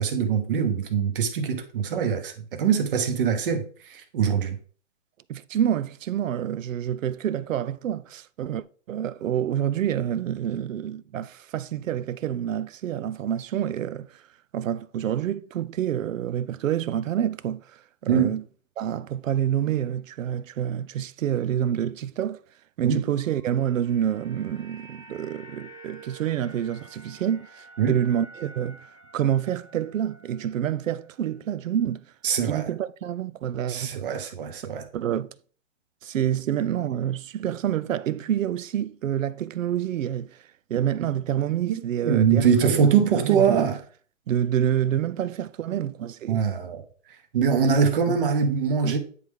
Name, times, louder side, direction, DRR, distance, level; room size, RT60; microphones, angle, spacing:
voice 1, 0.0-4.6 18.1-18.3 22.8-23.0 27.8-28.0 32.2-32.7 33.7-34.8 41.7-43.8 46.3-46.8 47.3-49.0, right 7 dB, 45° right, 1.1 m, -23 dB
voice 2, 5.3-14.2 14.5-18.4 18.8-22.4 22.8-28.9 29.1-32.1 32.4-34.3 34.9-35.4 36.0-40.4 40.7-43.7 44.3-46.4 48.1-48.4 48.8-49.0, right 10 dB, 85° right, 0.6 m, -28 dB
sound 1, 23.2-31.5 31.8-32.0, right 2 dB, 10° right, 1.2 m, -49 dB
9.3 x 3.3 x 3.6 m
hypercardioid pair, 155°, 38 cm